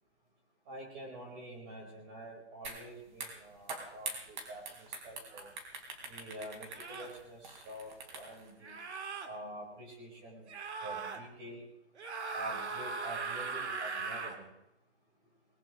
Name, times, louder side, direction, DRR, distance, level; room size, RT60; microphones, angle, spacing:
voice 1, 0.7-5.5 6.0-8.8 9.2-10.5 10.8-11.7 12.3-14.5, right 1 dB, 20° right, -1 dB, 4.2 m, -47 dB
sound 1, 2.6-2.8 3.1-8.5, right 3 dB, 45° right, 3.5 m, -44 dB
sound 2, 5.3-5.5 6.7-7.2 8.6-9.3 10.5-11.2 12.0-14.4, right 4 dB, 75° right, 2.3 m, -39 dB
20.0 x 19.0 x 3.0 m, 0.85 s
hypercardioid pair, 160°, 34 cm